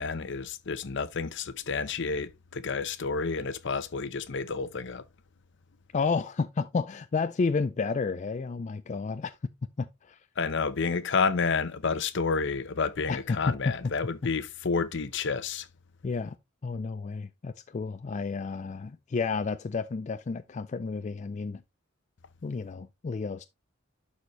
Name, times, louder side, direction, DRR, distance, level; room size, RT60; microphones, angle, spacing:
voice 1, 0.0-5.0 10.4-15.7, left 5 dB, 60° left, 0.7 m, -30 dB
voice 2, 5.9-9.4 9.8-10.2 13.1-13.5 16.0-16.4 16.6-21.6 22.4-23.4, left 4 dB, 35° left, 0.4 m, -31 dB
11.0 x 4.2 x 3.1 m
head